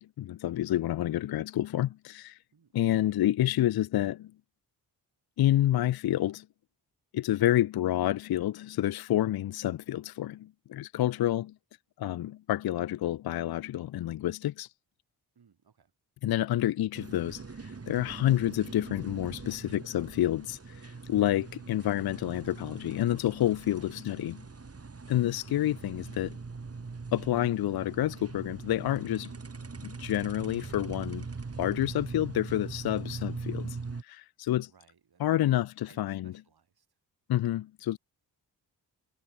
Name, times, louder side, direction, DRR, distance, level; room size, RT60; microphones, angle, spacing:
voice 1, 0.0-2.4 2.7-4.3 5.4-6.4 7.1-11.5 12.0-14.7 16.2-24.4 25.1-26.4 27.1-29.3 29.8-31.3 31.6-33.8 34.0-34.7 35.2-35.7 36.0-36.3 37.3-38.0, left 13 dB, 60° left, 0.6 m, -29 dB
voice 2, 2.5-3.0 11.1-11.3 15.3-15.9 19.5-19.9 23.7-24.0 25.0-25.3 34.6-36.9, right 6 dB, 60° right, 7.4 m, -63 dB
sound 1, 16.9-34.0, right 4 dB, 35° right, 2.9 m, -42 dB
supercardioid pair, 50°, 43 cm